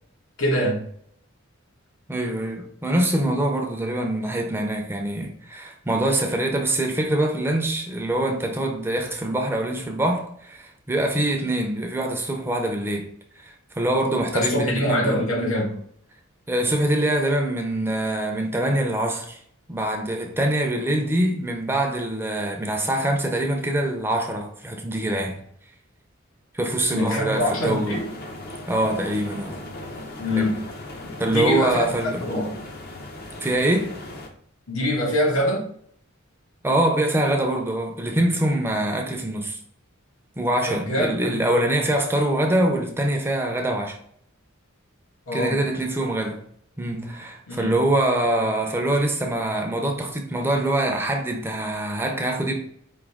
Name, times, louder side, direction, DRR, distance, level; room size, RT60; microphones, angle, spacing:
voice 1, 0.4-0.8 14.3-15.8 26.9-28.1 30.2-30.6 31.3-31.9 32.2-32.6 34.7-35.7 40.7-41.3 45.3-45.6 47.5-47.7, equal, 75° left, 1.5 m, -24 dB
voice 2, 2.1-13.1 13.4-15.2 16.5-19.4 19.7-25.4 26.5-28.0 28.7-29.6 30.4-30.5 31.2-32.2 33.4-33.9 36.6-39.6 40.4-44.0 45.3-46.4 46.8-52.5, right 1 dB, 10° right, 0.6 m, -24 dB
sound 1, 27.3-34.3, left 1 dB, 50° left, 0.8 m, -38 dB
5.1 x 2.7 x 3.5 m
head